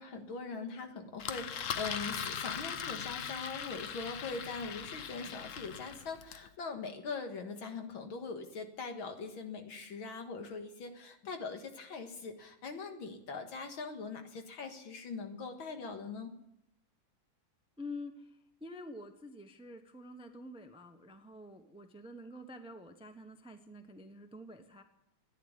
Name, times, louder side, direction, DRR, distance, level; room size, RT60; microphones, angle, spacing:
voice 1, 0.0-16.3, left 4 dB, 80° left, 6 dB, 2.4 m, -42 dB
Engine, 1.2-6.5, left 8 dB, 60° left, 0.8 m, -40 dB
voice 2, 17.8-24.8, left 1 dB, 5° right, 7 dB, 0.7 m, -48 dB
14.5 x 10.0 x 9.7 m, 0.80 s
omnidirectional pair, 2.2 m